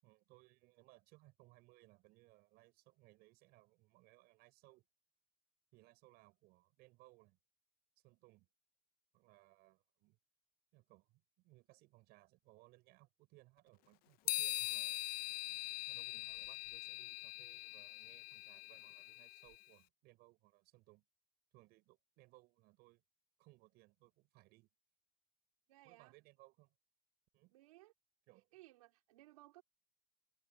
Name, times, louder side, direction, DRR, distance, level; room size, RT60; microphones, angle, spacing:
voice 1, 0.0-4.9 5.7-7.4 8.0-8.5 9.1-10.2 10.7-15.0 15.9-21.0 21.5-23.0 23.4-24.7 25.8-26.7 27.3-27.6 28.3-28.5, right 21 dB, 65° right, 6.2 m, -66 dB
sound 1, 14.3-19.6, left 18 dB, 60° left, 0.8 m, -42 dB
voice 2, 25.7-26.1 27.5-27.9 28.5-29.6, right 18 dB, 85° right, 3.8 m, -61 dB
supercardioid pair, 95°, 18 cm